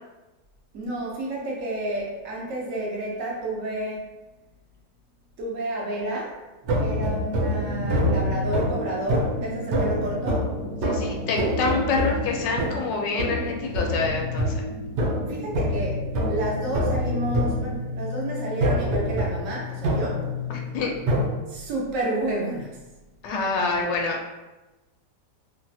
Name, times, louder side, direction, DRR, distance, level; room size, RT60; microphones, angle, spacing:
voice 1, 0.7-4.1 5.4-6.3 6.8-10.4 11.9-12.0 15.3-20.3 21.5-22.8, right 1 dB, 60° right, -3 dB, 0.9 m, -30 dB
sound 1, 6.7-21.3, equal, 75° right, 1.3 m, -26 dB
voice 2, 10.8-14.7 20.5-20.9 23.2-24.3, left 4 dB, 75° left, 1 dB, 1.2 m, -27 dB
3.2 x 2.7 x 2.3 m, 1.1 s
omnidirectional pair, 2.0 m